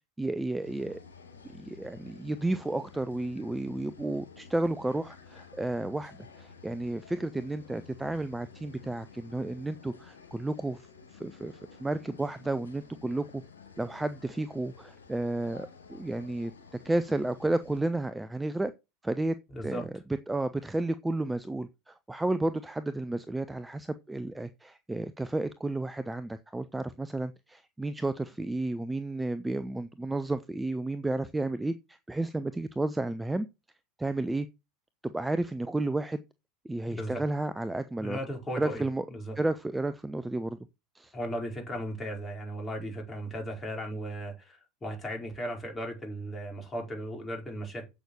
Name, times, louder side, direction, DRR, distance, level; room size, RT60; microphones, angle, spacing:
voice 1, 0.2-1.0 1.5-11.5 11.8-13.4 13.8-16.5 16.8-18.7 19.0-19.4 19.6-19.9 20.3-33.5 34.0-34.5 35.0-36.2 36.6-38.2 38.6-39.0 39.4-40.6 40.9-41.1, right 2 dB, 10° right, 0.7 m, -32 dB
sound 1, 0.6-17.8, left 5 dB, 75° left, 3.0 m, -52 dB
voice 2, 19.5-19.8 36.8-37.2 38.0-38.8 39.1-39.3 41.1-47.9, equal, 20° left, 5.0 m, -36 dB
8.2 x 6.2 x 6.7 m
figure-of-eight pair, 80°, 0 cm